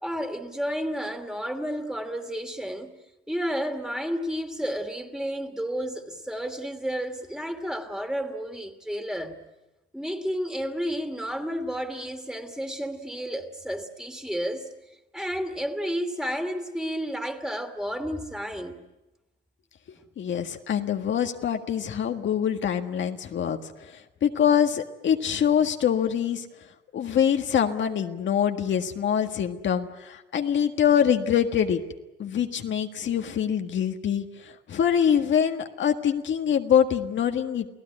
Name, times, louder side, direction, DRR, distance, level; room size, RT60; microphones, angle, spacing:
voice 1, 0.0-3.0 3.3-9.5 9.9-14.7 15.1-18.8, equal, 5° right, 2.6 m, -31 dB
voice 2, 20.2-26.5 26.9-31.8 32.2-37.7, left 8 dB, 70° left, 1.7 m, -24 dB
29.0 x 17.0 x 9.9 m
cardioid pair, 95°, 20 cm